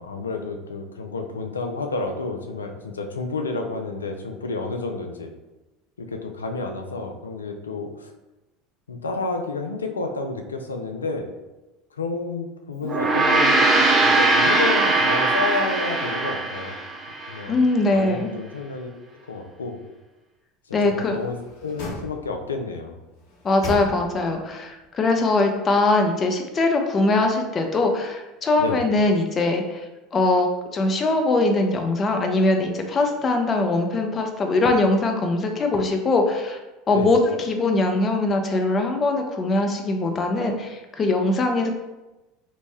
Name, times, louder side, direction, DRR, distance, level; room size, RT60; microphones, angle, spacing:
voice 1, 0.0-5.3 6.0-8.1 8.9-11.3 11.9-16.8 17.3-17.6 17.9-18.9 19.3-19.8 20.8-23.0 28.6-28.8 36.9-37.1, left 3 dB, 90° left, 4 dB, 0.3 m, -30 dB
Gong, 12.8-17.4, right 2 dB, 25° right, 0.5 m, -20 dB
voice 2, 17.5-18.3 20.7-21.2 23.4-29.8 30.1-36.6 36.9-41.7, left 2 dB, 30° left, 4 dB, 0.5 m, -21 dB
sound 1, 20.9-22.6 23.1-24.4 24.8-24.9, equal, 65° left, 0.9 m, -36 dB
2.6 x 2.1 x 3.3 m, 1.1 s
hypercardioid pair, 75°, 0 cm